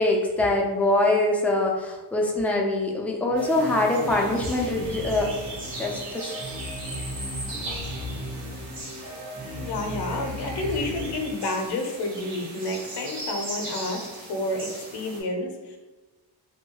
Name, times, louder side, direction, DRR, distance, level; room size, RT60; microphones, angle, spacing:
voice 1, 0.0-5.3 5.7-6.3, left 2 dB, 5° left, -1 dB, 0.3 m, -24 dB
sound 1, 3.3-11.1, left 1 dB, 45° right, 1.2 m, -36 dB
sound 2, 3.4-15.2, right 2 dB, 80° right, 1.1 m, -38 dB
voice 2, 9.6-15.8, left 2 dB, 70° left, 4 dB, 0.6 m, -30 dB
2.7 x 2.2 x 2.8 m, 1.2 s
wide cardioid pair, 125°, 41 cm